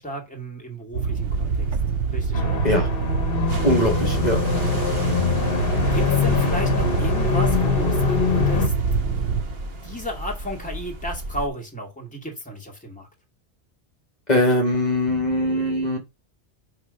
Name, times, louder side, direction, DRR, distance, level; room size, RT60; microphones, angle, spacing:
voice 1, 0.0-1.8 2.1-2.7 3.4-3.6 5.9-8.7 9.8-13.1, equal, 5° left, 2.1 m, -33 dB
sound 1, 0.9-9.4, right 6 dB, 90° right, 1.0 m, -26 dB
sound 2, 1.2-11.5, right 1 dB, 60° right, 1.3 m, -32 dB
sound 3, 2.3-8.7, left 7 dB, 55° left, 1.3 m, -24 dB
voice 2, 3.6-4.4 14.3-16.0, left 1 dB, 40° left, 1.7 m, -21 dB
9.2 x 3.2 x 5.2 m
omnidirectional pair, 1.1 m